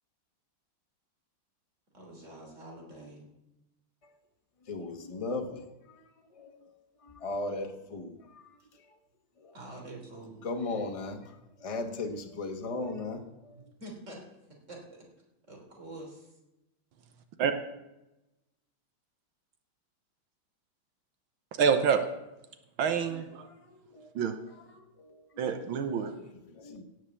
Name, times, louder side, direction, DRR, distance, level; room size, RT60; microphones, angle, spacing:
voice 1, 1.9-3.3 9.5-10.5 13.5-14.2 14.7-14.8 15.5-16.3, right 1 dB, 35° right, 0 dB, 3.6 m, -46 dB
voice 2, 4.7-6.0 6.3-6.8 7.0-8.5 9.4-9.5 10.4-11.3 11.6-13.6 23.7-24.1 24.7-25.2 25.4-25.8 26.2-26.8, left 3 dB, 20° left, 5 dB, 0.9 m, -37 dB
voice 3, 21.6-22.0 22.8-23.5 24.2-24.4 25.4-26.1, right 6 dB, 75° right, 8 dB, 1.7 m, -27 dB
17.5 x 6.7 x 7.0 m, 0.96 s
omnidirectional pair, 2.3 m